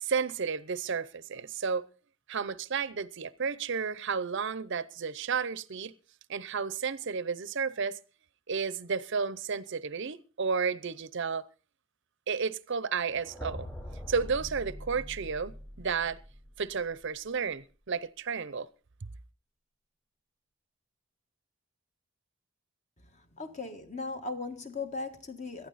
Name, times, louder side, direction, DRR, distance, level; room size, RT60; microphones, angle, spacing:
voice 1, 0.0-1.8 2.3-5.9 6.3-8.0 8.5-11.4 12.3-13.7 14.1-16.2 16.6-18.7, right 5 dB, 55° right, 0.6 m, -32 dB
sound 1, 13.1-17.0, equal, 15° left, 3.2 m, -43 dB
voice 2, 23.4-25.7, left 3 dB, 35° left, 1.5 m, -37 dB
18.0 x 12.5 x 4.1 m
head